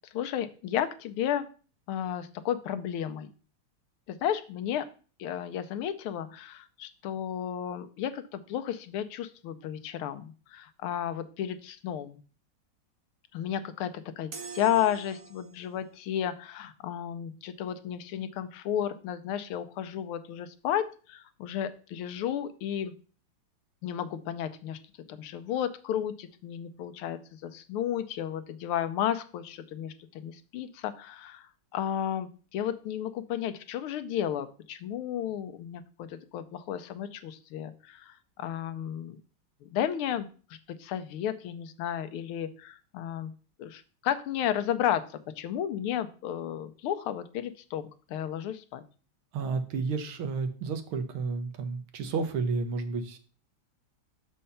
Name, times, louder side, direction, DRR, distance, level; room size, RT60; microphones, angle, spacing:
voice 1, 0.1-1.5 1.9-3.3 4.1-4.9 5.2-12.2 13.3-22.9 23.8-24.8 25.1-39.2 39.6-40.3 40.8-43.3 43.6-48.8, left 10 dB, 85° left, 11 dB, 1.6 m, -33 dB
sound 1, 14.3-15.8, right 6 dB, 50° right, 1.1 m, -44 dB
voice 2, 49.3-53.2, right 4 dB, 75° right, 8 dB, 1.8 m, -31 dB
6.4 x 5.6 x 5.6 m, 0.38 s
omnidirectional pair, 2.4 m